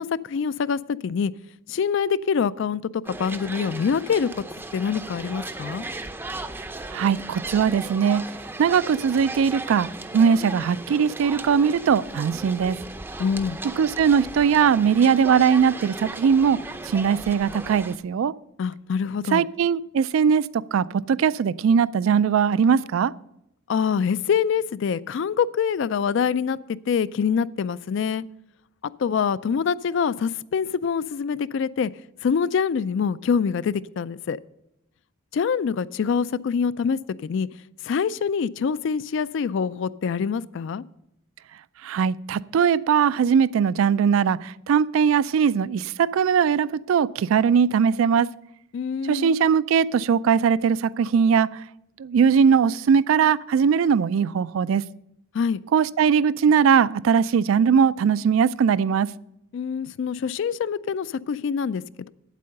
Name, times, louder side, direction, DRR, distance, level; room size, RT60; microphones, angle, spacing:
voice 1, 0.0-1.3 1.7-4.4 4.7-5.8 13.2-13.6 18.6-19.5 23.7-28.3 29.0-31.9 32.2-34.4 35.3-37.5 37.8-40.8 48.7-49.4 55.3-55.6 59.5-62.1, left 6 dB, 60° left, 0.3 m, -25 dB
sound 1, 3.1-18.0, right 2 dB, 10° right, 0.5 m, -36 dB
voice 2, 6.9-8.3 8.6-12.8 13.8-18.3 19.3-23.1 41.8-48.3 49.1-51.6 52.0-54.8 55.7-59.1, right 7 dB, 70° right, 0.3 m, -20 dB
8.5 x 8.3 x 6.5 m
head